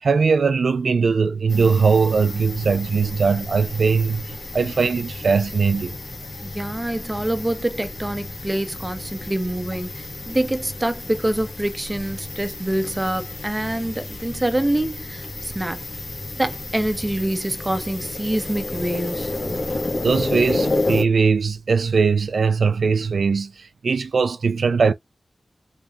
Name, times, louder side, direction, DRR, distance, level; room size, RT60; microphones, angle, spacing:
voice 1, 0.0-5.9 20.0-24.9, right 5 dB, 85° right, 0.4 m, -20 dB
sound 1, 1.5-21.0, left 2 dB, 55° left, 1.4 m, -31 dB
voice 2, 6.4-15.8 16.4-19.4, right 1 dB, 20° right, 0.8 m, -26 dB
4.0 x 3.5 x 2.4 m
wide cardioid pair, 100°, 0 cm